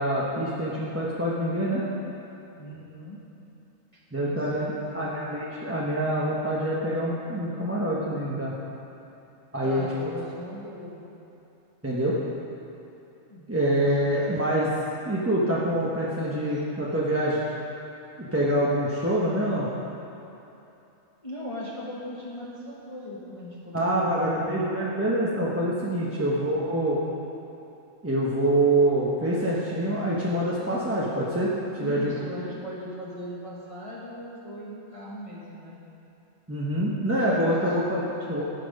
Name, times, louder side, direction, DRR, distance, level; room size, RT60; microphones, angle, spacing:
voice 1, 0.0-1.8 4.1-8.5 9.5-9.9 11.8-12.1 13.5-14.7 15.0-17.4 18.2-19.7 23.7-27.0 28.0-32.1 36.5-38.4, right 1 dB, 10° right, -7 dB, 0.9 m, -25 dB
voice 2, 2.5-3.2 4.1-5.4 9.6-11.0 13.3-14.2 16.5-16.6 21.2-24.5 31.8-35.8 37.6-38.4, left 1 dB, 25° left, -7 dB, 1.4 m, -39 dB
17.0 x 5.9 x 5.3 m, 2.9 s
omnidirectional pair, 1.5 m